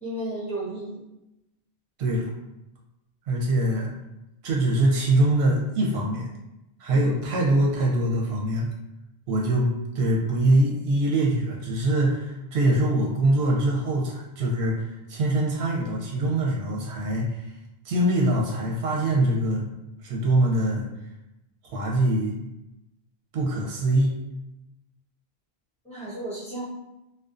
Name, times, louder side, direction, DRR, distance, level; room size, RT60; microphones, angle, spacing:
voice 1, 0.0-1.0 6.9-7.2 25.8-26.6, right 1 dB, 5° left, -10 dB, 0.8 m, -33 dB
voice 2, 2.0-2.3 3.3-3.9 4.4-6.3 6.8-8.7 9.3-17.5 17.8-19.6 20.0-20.9 21.6-22.4 23.3-24.1, right 1 dB, 80° right, -2 dB, 0.9 m, -23 dB
2.5 x 2.1 x 2.4 m, 0.93 s
omnidirectional pair, 1.1 m